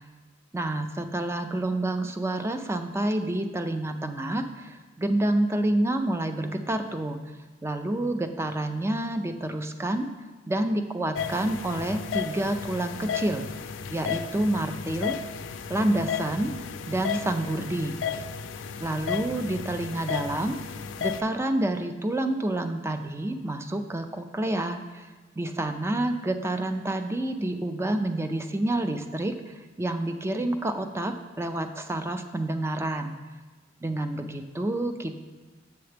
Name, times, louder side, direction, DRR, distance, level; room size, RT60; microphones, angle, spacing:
voice 1, 0.5-7.2 7.6-10.1 10.5-13.5 13.9-15.2 15.7-16.6 16.9-18.0 18.8-20.6 21.0-25.1 25.4-33.2 33.8-35.2, right 1 dB, 15° right, 7 dB, 0.4 m, -28 dB
sound 1, 11.2-21.2, left 7 dB, 75° left, 0.4 m, -34 dB
7.8 x 6.7 x 3.3 m, 1.3 s
head